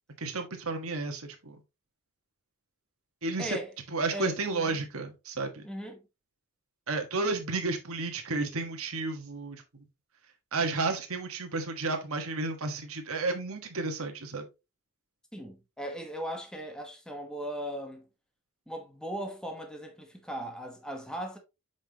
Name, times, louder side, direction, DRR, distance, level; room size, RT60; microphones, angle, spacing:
voice 1, 0.2-1.6 3.2-3.6 3.9-5.7 6.9-9.6 10.5-14.4, right 3 dB, 65° right, 1.4 m, -32 dB
voice 2, 3.4-3.7 4.1-4.8 5.6-6.0 15.3-18.1 18.7-21.4, equal, 5° left, 1.1 m, -38 dB
7.2 x 5.4 x 2.9 m
head